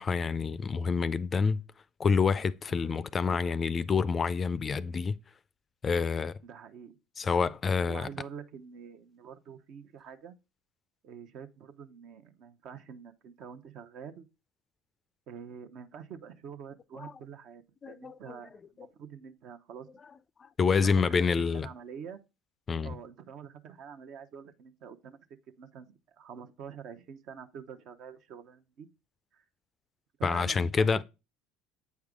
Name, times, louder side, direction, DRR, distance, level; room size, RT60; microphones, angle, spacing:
voice 1, 0.0-1.6 2.0-5.2 5.8-6.4 7.2-8.1 17.0-17.1 17.8-18.3 20.4-21.7 22.7-23.0 30.2-31.0, left 5 dB, 35° left, 0.4 m, -28 dB
voice 2, 2.7-3.0 6.4-7.0 7.2-7.5 7.9-10.4 11.0-14.3 15.3-19.9 20.8-21.3 21.5-22.2 22.8-25.2 25.6-28.9 29.3-29.4 30.2-31.0, right 7 dB, 60° right, 0.8 m, -46 dB
8.3 x 4.7 x 3.7 m
hypercardioid pair, 70°, 0 cm